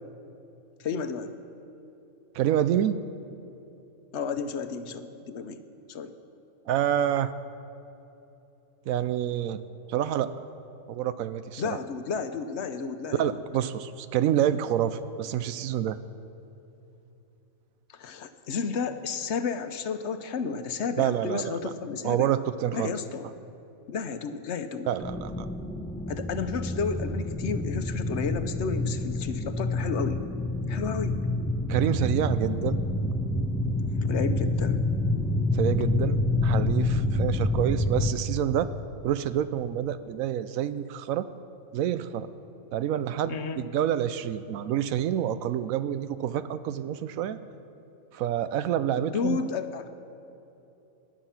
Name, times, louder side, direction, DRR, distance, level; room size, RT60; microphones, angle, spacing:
voice 1, 0.8-1.3 4.1-5.6 5.9-6.1 11.6-13.4 17.9-22.3 22.7-23.3 23.9-24.9 26.1-30.2 30.7-31.2 34.0-34.8 43.3-43.6 49.0-49.9, left 5 dB, 60° left, 9 dB, 1.0 m, -32 dB
voice 2, 2.3-3.0 6.7-7.3 8.9-9.6 9.9-10.3 10.9-11.8 13.1-16.0 21.0-21.7 22.0-22.9 24.9-25.5 31.7-32.8 35.5-38.7 39.0-41.3 41.7-42.3 42.7-47.4 48.1-49.4, right 10 dB, 85° right, 13 dB, 1.0 m, -27 dB
sound 1, 25.0-38.1, left 2 dB, 5° left, 0.5 m, -27 dB
19.0 x 10.0 x 5.8 m, 2.9 s
omnidirectional pair, 1.4 m